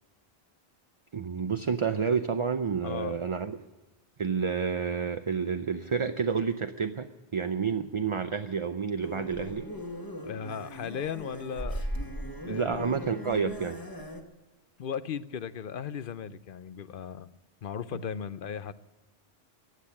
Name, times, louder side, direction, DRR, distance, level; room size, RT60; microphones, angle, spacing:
voice 1, 1.1-3.6 4.2-9.7 12.4-13.8, right 6 dB, 35° right, 8 dB, 0.5 m, -29 dB
voice 2, 2.8-3.2 10.2-12.2 12.5-12.9 14.8-17.3 17.6-18.7, left 7 dB, 60° left, 14 dB, 0.8 m, -37 dB
sound 1, 9.0-14.2, equal, 20° left, 1.5 m, -38 dB
16.0 x 9.8 x 8.5 m, 1.2 s
omnidirectional pair, 1.1 m